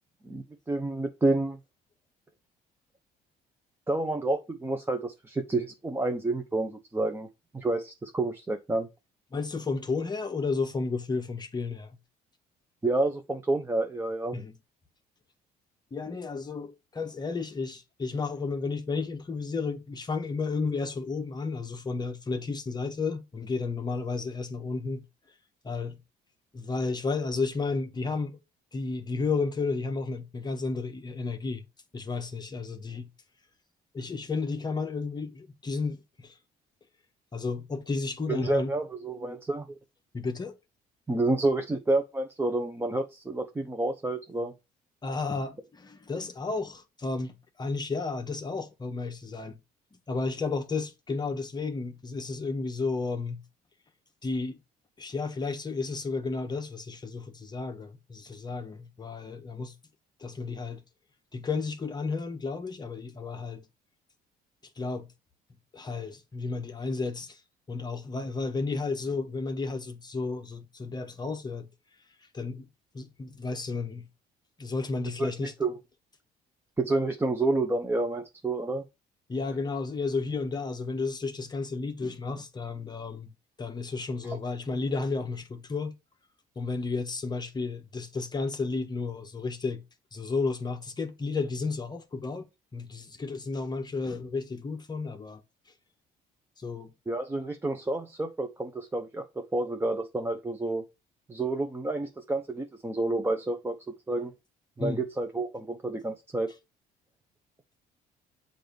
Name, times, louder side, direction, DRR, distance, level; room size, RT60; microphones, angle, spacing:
voice 1, 0.2-1.6 3.9-7.3 7.5-8.9 12.8-14.4 38.3-39.8 41.1-44.5 75.2-75.8 76.8-78.8 84.3-84.4 97.1-100.8 101.3-103.8 104.1-104.3 104.8-106.5, right 2 dB, 15° right, 0.7 m, -29 dB
voice 2, 9.3-12.0 14.3-14.6 15.9-25.0 25.6-26.0 26.5-28.4 28.7-31.6 31.9-33.1 33.9-36.4 37.3-38.7 40.1-40.6 45.0-49.6 50.1-53.4 54.2-54.6 55.0-59.7 60.2-60.8 61.3-63.7 64.8-65.1 65.7-67.4 67.7-71.7 72.2-72.7 72.9-74.1 74.6-75.5 79.3-83.3 83.6-85.9 86.6-89.8 90.1-92.5 92.7-95.4 96.6-96.9 104.8-105.0, left 4 dB, 25° left, 0.9 m, -32 dB
7.7 x 2.6 x 5.1 m
cardioid pair, 110°, 17 cm